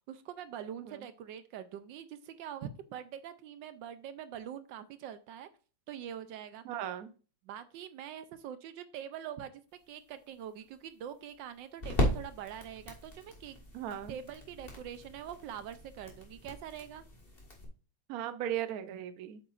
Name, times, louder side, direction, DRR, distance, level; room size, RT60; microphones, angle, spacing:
voice 1, 0.1-5.5 5.9-6.6 7.4-9.6 9.9-13.6 14.1-17.0, right 9 dB, 80° right, 11 dB, 1.3 m, -44 dB
voice 2, 6.6-7.1 13.7-14.2 18.1-19.4, right 11 dB, 65° right, 10 dB, 1.0 m, -37 dB
sound 1, 9.7-17.6, left 1 dB, 30° left, 1.8 m, -38 dB
8.3 x 7.9 x 2.5 m, 0.38 s
omnidirectional pair, 2.1 m